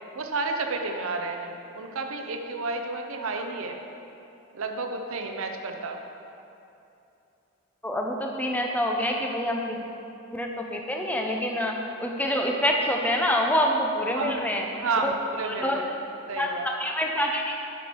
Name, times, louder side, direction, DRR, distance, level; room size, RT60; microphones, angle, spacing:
voice 1, 0.1-3.8 4.5-6.0 14.1-14.4 14.7-15.9 16.3-16.7, right 3 dB, 70° right, 4 dB, 0.7 m, -31 dB
voice 2, 7.8-9.8 10.3-11.7 12.0-14.7 15.0-15.1 15.4-15.8 16.4-17.6, equal, 5° left, 1 dB, 0.6 m, -26 dB
8.3 x 5.9 x 4.5 m, 2.8 s
head